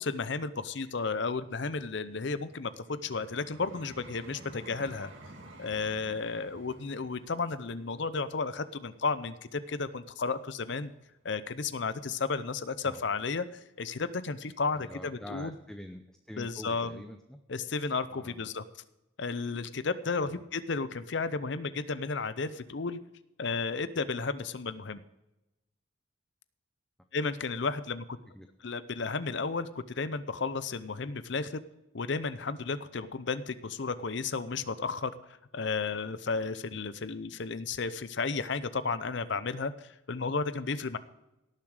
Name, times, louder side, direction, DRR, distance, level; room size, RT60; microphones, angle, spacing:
voice 1, 0.0-5.1 5.6-10.9 11.2-15.5 16.4-17.0 17.5-18.6 19.2-23.0 23.4-25.0 27.1-28.2 28.6-29.7 30.0-31.5 31.9-35.1 35.5-41.0, left 4 dB, 60° left, 14 dB, 0.6 m, -33 dB
Vehicle, 1.2-10.3 10.9-11.1, right 2 dB, 65° right, 2.0 m, -53 dB
voice 2, 14.7-17.4 18.1-18.5 20.2-20.4 28.3-28.5, left 1 dB, 5° left, 6 dB, 0.6 m, -46 dB
17.5 x 7.3 x 4.9 m, 0.94 s
head